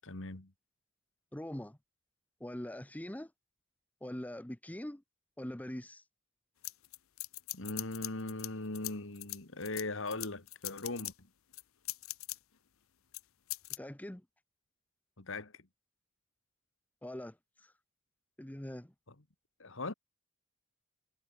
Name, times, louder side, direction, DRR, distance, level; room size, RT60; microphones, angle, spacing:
voice 1, 0.0-0.5 7.5-11.3 15.2-15.7 19.6-19.9, left 2 dB, 70° left, 2.2 m, -40 dB
voice 2, 1.3-1.8 2.4-3.3 4.0-5.0 5.4-6.0 13.8-14.3 17.0-17.7 18.4-18.9, left 1 dB, 10° left, 0.8 m, -43 dB
sound 1, 6.6-8.5 8.7-11.1 11.5-12.4 13.1-13.2 13.5-13.8, left 18 dB, 85° left, 0.9 m, -41 dB
head